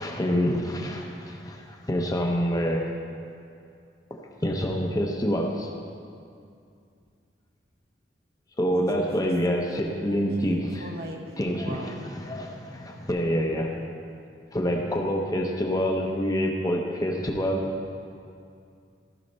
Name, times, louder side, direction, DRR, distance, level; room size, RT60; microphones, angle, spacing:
voice 1, 0.0-2.9 4.1-5.7 8.6-10.9 11.4-13.8 14.5-17.7, equal, 20° left, 1 dB, 0.8 m, -27 dB
voice 2, 8.7-9.3 9.7-11.2 11.6-12.0, right 2 dB, 60° right, 1 dB, 1.0 m, -41 dB
15.0 x 5.7 x 5.4 m, 2.4 s
head